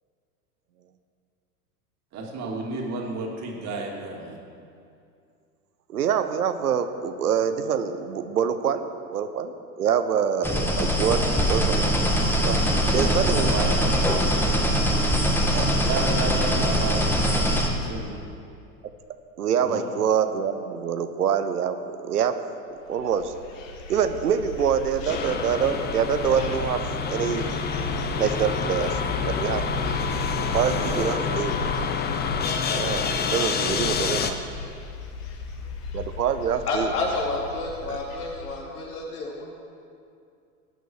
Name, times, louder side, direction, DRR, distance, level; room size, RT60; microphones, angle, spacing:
voice 1, 2.1-4.4 12.8-14.2 15.7-18.2 19.6-19.8 30.7-31.5, right 3 dB, 35° right, -1 dB, 2.8 m, -32 dB
voice 2, 5.9-11.2 11.5-12.1 12.4-12.6 12.9-13.5 15.5-15.8 19.4-22.4 22.9-23.3 23.9-26.8 27.1-27.6 28.2-29.0 29.2-29.6 30.5-31.5 32.7-34.4 35.9-36.9 37.8-38.0, right 7 dB, 75° right, 9 dB, 1.0 m, -25 dB
sound 1, 10.4-17.7, equal, 5° left, 1.6 m, -22 dB
sound 2, 22.9-38.6, left 2 dB, 55° left, 1.9 m, -35 dB
sound 3, 25.1-34.3, left 6 dB, 20° left, 0.9 m, -28 dB
voice 3, 36.7-39.4, left 3 dB, 70° left, -2 dB, 3.4 m, -29 dB
18.5 x 9.1 x 4.7 m, 2.4 s
figure-of-eight pair, 90°, 46 cm